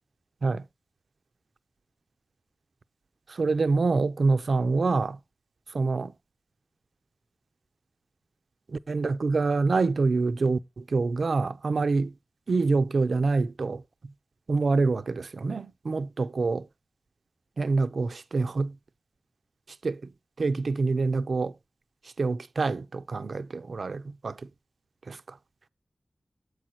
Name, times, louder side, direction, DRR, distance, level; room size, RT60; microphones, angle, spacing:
voice 1, 3.3-5.2 5.7-6.1 8.7-12.1 12.5-13.8 14.5-16.7 17.6-18.8 19.8-20.1 20.4-21.5 22.2-24.4 25.1-25.4, right 3 dB, 80° right, 0.6 m, -26 dB
8.2 x 6.3 x 4.3 m
cardioid pair, 45°, 0 cm